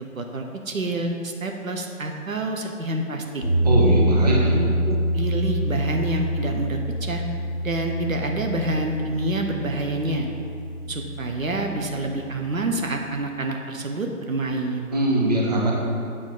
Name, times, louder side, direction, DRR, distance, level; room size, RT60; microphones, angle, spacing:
voice 1, 0.1-3.4 4.3-7.2 7.6-10.3 10.9-14.9, right 2 dB, 65° right, 3 dB, 0.9 m, -28 dB
sound 1, 3.4-12.3, right 1 dB, 10° right, 1.5 m, -26 dB
voice 2, 3.6-4.6 14.9-15.7, right 1 dB, 30° right, -3 dB, 0.8 m, -21 dB
7.7 x 6.0 x 3.9 m, 2.4 s
figure-of-eight pair, 155°, 43 cm